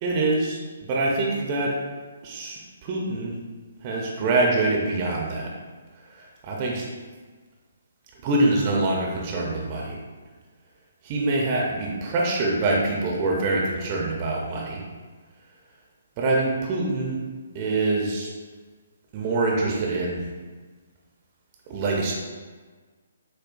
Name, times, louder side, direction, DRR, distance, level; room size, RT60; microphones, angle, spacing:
voice 1, 0.0-0.6 0.9-1.8 2.2-3.4 3.8-5.5 6.1-6.9 8.2-10.0 11.0-14.8 16.2-17.2 17.5-18.3 19.1-20.2 21.7-22.1, right 2 dB, 30° right, -2 dB, 0.7 m, -25 dB
7.3 x 2.6 x 2.6 m, 1.4 s
figure-of-eight pair, 130°, 0 cm